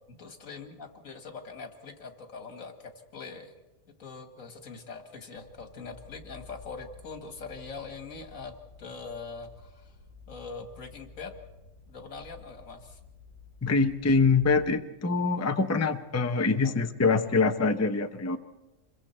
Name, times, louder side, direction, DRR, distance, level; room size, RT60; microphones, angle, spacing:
voice 1, 0.2-3.5 4.0-9.9 10.3-11.3 11.9-13.0 16.6-17.5, left 4 dB, 80° left, 6 dB, 2.1 m, -43 dB
sound 1, 5.3-14.7, left 4 dB, 90° right, 5.9 m, -52 dB
voice 2, 13.6-18.4, left 4 dB, 15° left, 7 dB, 0.7 m, -24 dB
27.0 x 22.5 x 4.4 m, 1.0 s
omnidirectional pair, 1.4 m